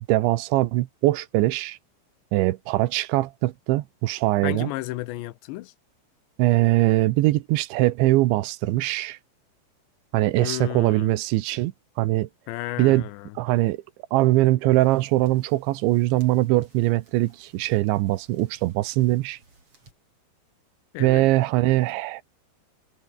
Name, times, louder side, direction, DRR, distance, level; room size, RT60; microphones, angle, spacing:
voice 1, 0.1-1.8 2.3-4.7 6.4-9.2 10.1-12.3 12.8-13.1 13.4-13.8 14.1-19.4 21.0-22.2, right 18 dB, 90° right, 3.3 m, -22 dB
voice 2, 4.4-5.7 10.4-11.1 12.5-13.3 20.9-21.3, left 18 dB, 85° left, 3.0 m, -33 dB
sound 1, 14.7-19.9, right 3 dB, 30° right, 7.5 m, -57 dB
omnidirectional pair, 5.2 m